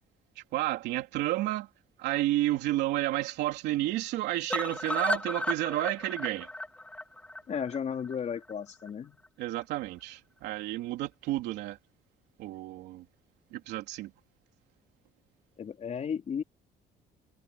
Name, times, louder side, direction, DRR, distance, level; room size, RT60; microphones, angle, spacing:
voice 1, 0.5-1.7 2.0-6.5 9.4-11.8 12.4-13.0 13.5-14.1, right 16 dB, 85° right, 3.3 m, -31 dB
sound 1, 4.5-8.5 8.9-9.0 9.2-9.3 9.6-9.7, left 1 dB, 5° left, 3.5 m, -34 dB
voice 2, 7.5-9.2 15.6-16.4, left 7 dB, 40° left, 3.7 m, -34 dB
cardioid pair, 110°, 17 cm